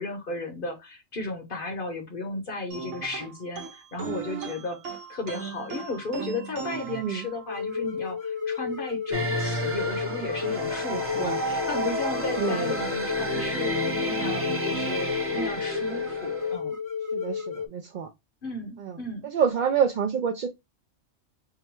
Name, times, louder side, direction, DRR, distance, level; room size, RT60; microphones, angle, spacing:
voice 1, 0.0-4.8 5.1-16.8 18.4-19.3, left 2 dB, 50° left, 0.9 m, -35 dB
sound 1, 2.7-7.8, right 6 dB, 80° right, 1.0 m, -38 dB
voice 2, 6.9-7.3 10.9-11.4 12.3-12.8 17.1-18.1 18.8-19.0 19.2-20.5, right 7 dB, 60° right, 0.5 m, -28 dB
sound 2, 7.5-17.7, left 6 dB, 20° left, 0.7 m, -32 dB
sound 3, 9.1-16.5, right 1 dB, 15° right, 0.6 m, -31 dB
3.7 x 2.2 x 4.3 m
omnidirectional pair, 1.2 m